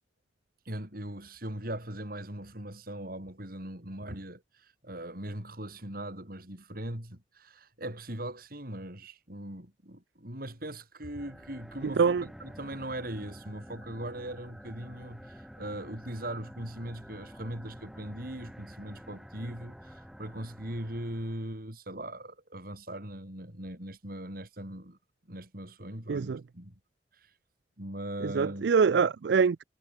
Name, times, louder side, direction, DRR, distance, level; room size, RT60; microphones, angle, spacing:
voice 1, 0.6-25.0 25.3-26.8 27.1-27.3 27.8-28.7, right 1 dB, 55° right, 6.4 m, -40 dB
sound 1, 11.1-21.6, equal, ahead, 6.8 m, -49 dB
voice 2, 11.8-12.2 26.1-26.4 28.2-29.6, right 5 dB, 75° right, 0.4 m, -24 dB
head